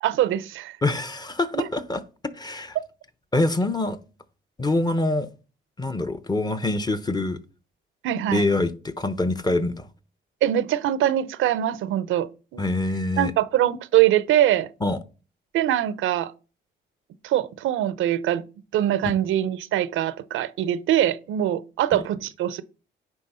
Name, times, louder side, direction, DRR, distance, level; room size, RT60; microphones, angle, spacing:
voice 1, 0.0-0.8 1.5-1.7 2.8-2.9 8.0-8.4 10.4-12.6 13.2-14.7 15.5-16.3 17.2-18.5 18.7-22.6, right 12 dB, 80° right, 0.6 m, -23 dB
voice 2, 0.8-2.0 2.3-2.8 3.3-4.0 4.6-5.3 5.8-7.4 8.3-9.9 12.6-13.3 14.8-15.0 21.9-22.0, left 2 dB, 20° left, 0.9 m, -25 dB
9.4 x 3.5 x 5.5 m
cardioid pair, 90°, 20 cm